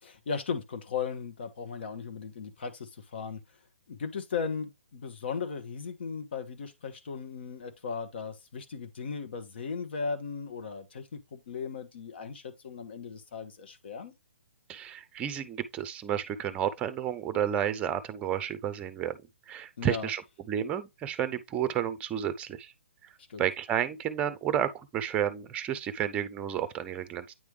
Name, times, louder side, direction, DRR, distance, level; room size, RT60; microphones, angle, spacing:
voice 1, 0.0-3.4 3.9-14.1 19.8-20.1 23.3-23.5, left 5 dB, 55° left, 1.5 m, -37 dB
voice 2, 14.7-19.2 19.5-20.2 20.5-22.7 23.4-27.3, right 9 dB, 20° right, 0.6 m, -31 dB
9.2 x 3.4 x 3.3 m
figure-of-eight pair, 130°, 7 cm